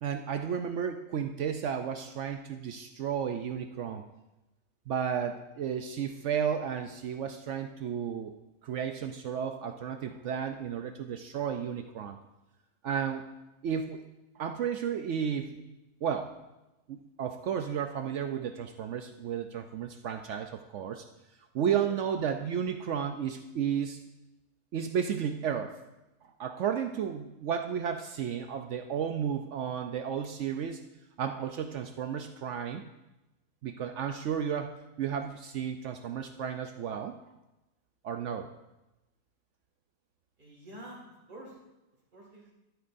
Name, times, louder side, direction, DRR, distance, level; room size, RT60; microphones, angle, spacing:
voice 1, 0.0-4.0 4.9-8.4 8.6-12.2 12.8-13.2 13.6-14.0 14.4-15.6 16.0-16.3 16.9-21.0 21.5-24.0 24.7-25.8 26.4-30.8 31.2-32.8 33.6-37.2 38.0-38.5, right 8 dB, 70° right, 6 dB, 0.7 m, -33 dB
voice 2, 40.4-41.5 42.1-42.5, right 1 dB, 30° right, -2 dB, 2.4 m, -48 dB
12.5 x 7.9 x 2.6 m, 0.97 s
omnidirectional pair, 1.7 m